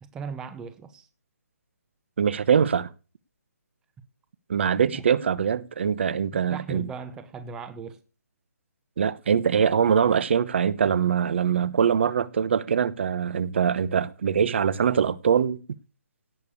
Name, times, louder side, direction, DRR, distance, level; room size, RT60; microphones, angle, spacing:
voice 1, 0.0-1.1 4.9-5.0 6.3-8.0, right 5 dB, 5° right, 0.8 m, -38 dB
voice 2, 2.2-2.9 4.5-6.9 9.0-15.6, right 7 dB, 45° right, 1.0 m, -23 dB
17.5 x 7.0 x 8.5 m
hypercardioid pair, 170°, 9 cm